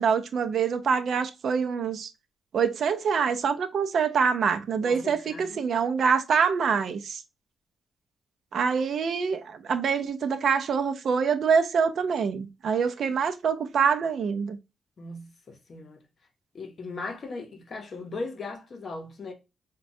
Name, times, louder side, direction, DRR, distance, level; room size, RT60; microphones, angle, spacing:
voice 1, 0.0-2.1 2.5-7.2 8.5-14.6, right 6 dB, 60° right, 0.4 m, -25 dB
voice 2, 4.8-5.7 15.0-16.0 16.5-19.3, left 3 dB, 45° left, 0.7 m, -38 dB
4.1 x 2.2 x 2.6 m
cardioid pair, 110°, 0 cm